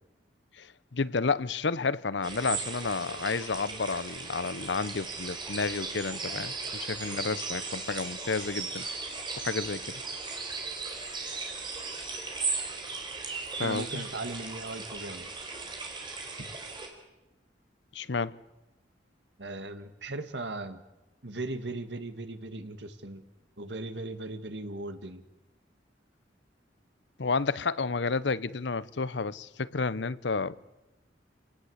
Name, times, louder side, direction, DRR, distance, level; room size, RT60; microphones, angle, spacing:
voice 1, 0.6-8.9 9.4-10.0 13.6-14.0 17.9-18.4 27.2-30.6, left 4 dB, 75° left, 0.8 m, -31 dB
sound 1, 2.2-16.9, right 4 dB, 25° right, 4.6 m, -37 dB
voice 2, 13.6-15.3 19.4-20.8 21.2-23.2 23.6-25.2, right 2 dB, 70° right, 2.0 m, -38 dB
29.0 x 18.5 x 8.1 m
head